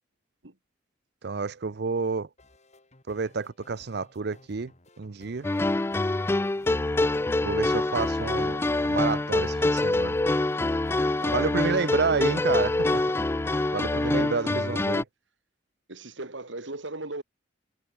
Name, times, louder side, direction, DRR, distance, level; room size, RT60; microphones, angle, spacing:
voice 1, 1.2-2.3 3.1-4.7 5.0-5.5 7.4-10.2 11.3-13.0 13.7-15.0, right 4 dB, 60° right, 0.6 m, -29 dB
sound 1, 2.0-13.3, left 1 dB, 40° left, 3.7 m, -57 dB
sound 2, 5.4-15.0, left 2 dB, 15° left, 0.3 m, -25 dB
voice 2, 11.2-12.2 13.9-14.8 15.9-17.2, right 2 dB, 80° right, 3.1 m, -38 dB
head